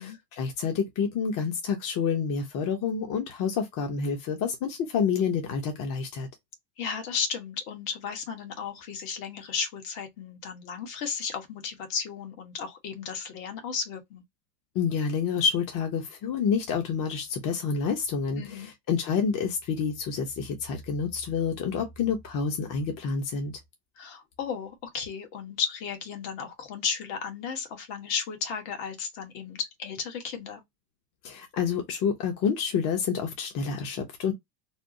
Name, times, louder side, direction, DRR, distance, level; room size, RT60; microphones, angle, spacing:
voice 1, 0.0-6.3 14.7-23.5 31.2-34.3, left 6 dB, 45° left, 0.9 m, -28 dB
voice 2, 6.8-14.2 18.4-18.7 24.0-30.6, left 6 dB, 60° left, 1.3 m, -34 dB
3.4 x 2.0 x 2.5 m
supercardioid pair, 120°, 47 cm